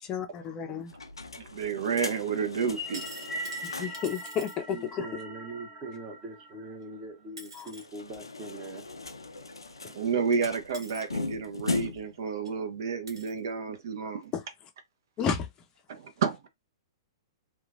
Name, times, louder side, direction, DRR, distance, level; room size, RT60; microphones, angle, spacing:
voice 1, 0.1-0.9 3.6-5.1 7.5-7.7 14.3-14.4 15.2-15.5, left 7 dB, 25° left, 0.5 m, -32 dB
sound 1, 0.9-4.1 4.5-4.6 4.8-4.9 7.7-12.2, left 3 dB, 90° left, 0.4 m, -38 dB
voice 2, 1.4-3.1 9.8-14.3 15.9-16.5, right 6 dB, 60° right, 0.6 m, -30 dB
sound 2, 2.6-7.1, equal, 5° right, 1.5 m, -41 dB
sound 3, 2.7-4.6 6.8-6.9 7.4-7.8 9.7-9.8 10.7-11.0 12.0-12.1 12.4-12.5 13.1-13.4 14.2-14.3, right 3 dB, 80° right, 1.4 m, -46 dB
voice 3, 4.7-8.8, right 2 dB, 30° right, 1.1 m, -42 dB
3.0 x 2.3 x 2.4 m
figure-of-eight pair, 115°, 2 cm